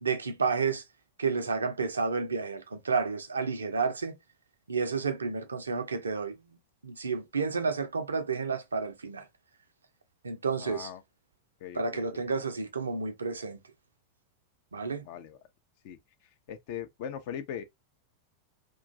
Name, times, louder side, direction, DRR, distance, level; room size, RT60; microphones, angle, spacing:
voice 1, 0.0-0.8 1.2-4.2 4.7-6.4 6.8-9.3 10.2-10.9 11.7-13.6 14.7-15.0, right 4 dB, 75° right, 0.4 m, -31 dB
voice 2, 10.6-11.0 11.6-12.3 14.8-15.4 15.8-16.0 16.5-17.6, left 9 dB, 50° left, 0.5 m, -40 dB
2.4 x 2.2 x 2.5 m
figure-of-eight pair, 90°, 0 cm